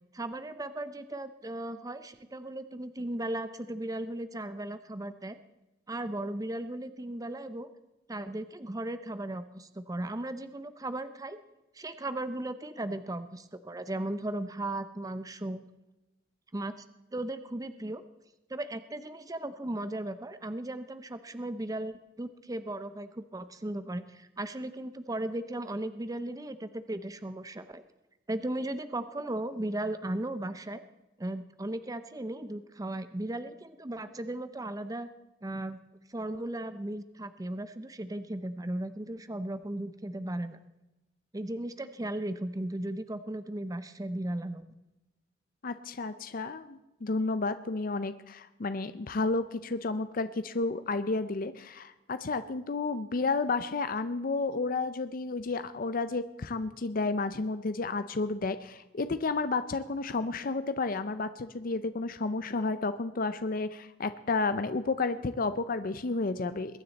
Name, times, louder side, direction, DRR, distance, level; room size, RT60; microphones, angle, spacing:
voice 1, 0.1-5.4 5.9-7.7 8.1-11.4 11.7-15.6 16.5-16.7 17.1-18.0 18.5-27.8 28.3-30.8 31.2-35.1 35.4-35.8 36.1-40.6 41.3-44.6, right 1 dB, 20° right, 11 dB, 0.6 m, -36 dB
voice 2, 45.6-66.8, left 3 dB, 50° left, 12 dB, 0.6 m, -31 dB
22.0 x 9.7 x 4.1 m, 0.99 s
head